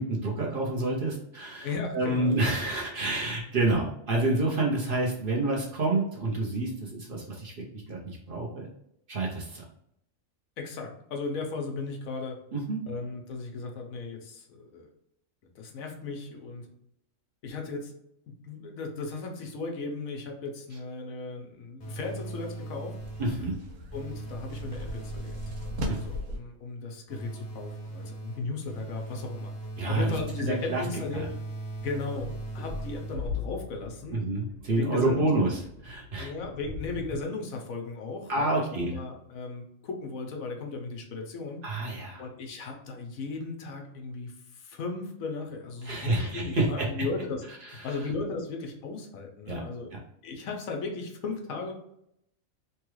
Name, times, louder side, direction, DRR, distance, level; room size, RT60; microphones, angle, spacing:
voice 1, 0.0-1.7 1.9-8.7 9.1-9.6 12.5-12.8 23.2-23.6 25.9-26.0 29.8-30.1 30.4-30.8 31.1-31.2 34.1-35.6 35.8-36.3 38.3-38.9 41.6-42.2 45.8-46.9 47.8-47.9 49.5-49.6 49.9-50.0, right 2 dB, 50° right, -3 dB, 0.8 m, -28 dB
voice 2, 1.6-2.3 10.6-12.4 12.9-14.9 15.4-16.7 17.4-17.9 18.3-22.9 23.9-25.4 26.0-29.5 29.9-31.3 31.8-34.2 34.8-35.3 36.2-41.6 42.2-47.4 47.8-49.9 50.2-51.7, left 3 dB, 90° left, 2 dB, 1.1 m, -36 dB
sound 1, 21.8-23.5 23.9-26.4 27.1-33.5, right 2 dB, 40° left, 0.8 m, -39 dB
sound 2, 23.0-26.4, equal, 85° right, 1.1 m, -37 dB
sound 3, 32.2-37.2, left 4 dB, 35° right, 1.3 m, -40 dB
3.2 x 2.3 x 3.1 m, 0.76 s
omnidirectional pair, 1.4 m